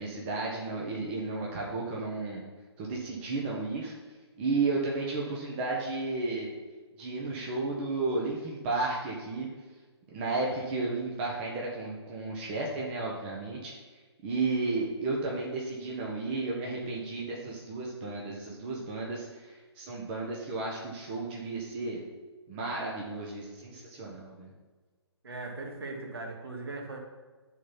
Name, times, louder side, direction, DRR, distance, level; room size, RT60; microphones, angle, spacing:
voice 1, 0.0-2.4 2.8-3.9 4.4-6.5 7.0-9.5 10.1-13.7 14.2-19.5 19.8-22.0 22.5-24.5, right 3 dB, 25° right, -2 dB, 1.3 m, -33 dB
voice 2, 25.2-27.0, right 3 dB, 60° right, 1 dB, 2.1 m, -39 dB
10.5 x 4.1 x 5.9 m, 1.4 s
figure-of-eight pair, 135°, 15 cm